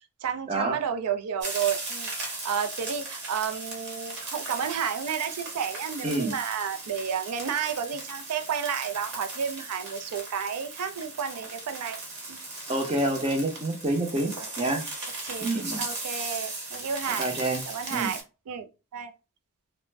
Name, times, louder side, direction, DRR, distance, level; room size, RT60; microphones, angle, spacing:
voice 1, 0.2-12.0 12.3-12.4 14.4-14.7 15.2-17.3 17.7-18.2 18.5-18.7 18.9-19.1, right 7 dB, 90° right, 0.4 m, -31 dB
sound 1, 1.4-18.2, right 2 dB, 50° right, 1.1 m, -37 dB
voice 2, 6.0-6.3 12.7-14.8 15.4-15.8 17.2-17.6 17.9-18.1, right 2 dB, 25° right, 0.5 m, -27 dB
2.5 x 2.1 x 3.1 m
head